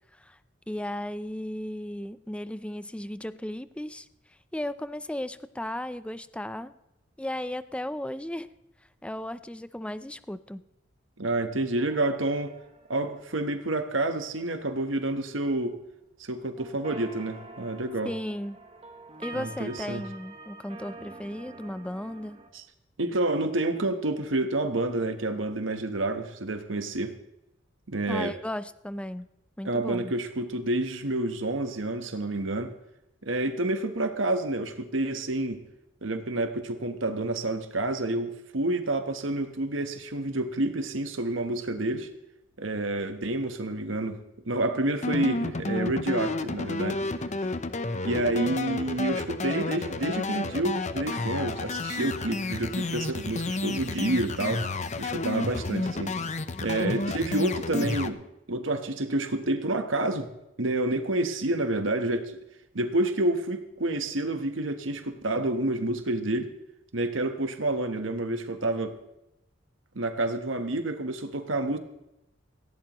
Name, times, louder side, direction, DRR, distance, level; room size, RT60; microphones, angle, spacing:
voice 1, 0.7-4.1 4.5-6.7 7.2-8.5 9.0-10.6 18.0-18.6 19.2-22.4 28.1-29.3 29.6-30.1, left 1 dB, 5° left, 13 dB, 0.5 m, -35 dB
voice 2, 11.2-12.5 12.9-15.8 16.2-18.1 19.3-20.0 22.5-22.6 23.0-27.1 27.9-28.3 29.6-32.7 33.2-35.6 36.0-42.1 42.6-44.2 44.4-47.0 48.0-54.6 55.0-56.1 56.6-58.2 58.5-60.3 60.6-62.4 62.7-66.5 66.9-69.0 69.9-71.8, right 2 dB, 90° right, 7 dB, 1.2 m, -29 dB
sound 1, 11.8-13.9 16.6-22.5, right 2 dB, 30° right, 1.4 m, -46 dB
sound 2, 45.0-58.1, left 3 dB, 40° left, 0.7 m, -31 dB
18.0 x 16.0 x 3.1 m, 0.88 s
head